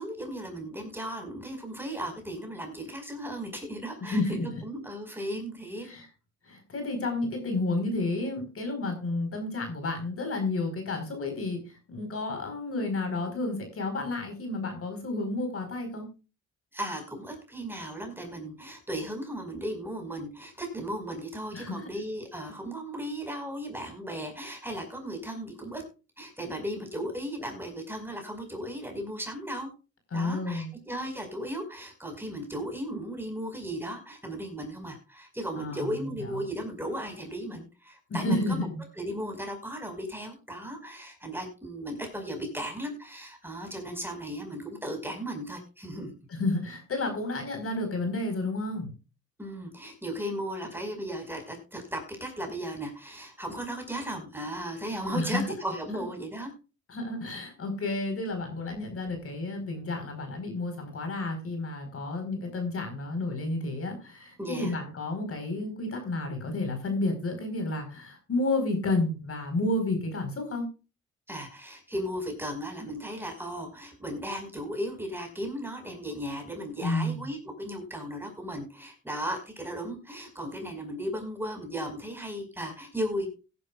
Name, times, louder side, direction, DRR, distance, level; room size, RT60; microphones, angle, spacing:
voice 1, 0.0-5.9 16.7-25.8 26.2-29.7 30.1-38.7 39.0-46.2 49.4-56.5 64.4-64.7 71.3-83.3, equal, 5° right, 4 dB, 5.3 m, -36 dB
voice 2, 4.1-4.6 5.8-6.1 6.4-16.1 21.5-21.9 30.1-30.7 35.6-36.4 38.1-38.8 46.3-48.9 55.1-55.4 56.9-70.7 76.8-77.3, left 2 dB, 50° left, 5 dB, 4.7 m, -31 dB
17.0 x 11.0 x 2.5 m, 0.31 s
cardioid pair, 90°, 30 cm